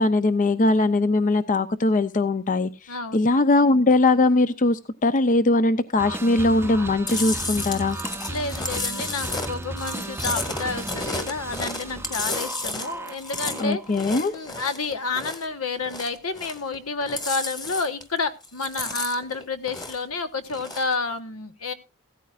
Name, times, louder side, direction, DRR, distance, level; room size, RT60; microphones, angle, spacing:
voice 1, 0.0-8.0 13.6-14.3, left 2 dB, 35° left, 12 dB, 0.6 m, -21 dB
voice 2, 2.9-3.2 8.3-13.8 14.3-21.7, left 3 dB, 80° left, 10 dB, 1.3 m, -30 dB
sound 1, 6.0-14.0, right 2 dB, 10° right, 0.6 m, -35 dB
Chewing mastication, 7.1-15.5 15.8-16.8 17.0-18.2 18.4-20.1 20.5-20.9, left 2 dB, 20° left, 1.9 m, -32 dB
16.0 x 13.5 x 2.5 m, 0.27 s
head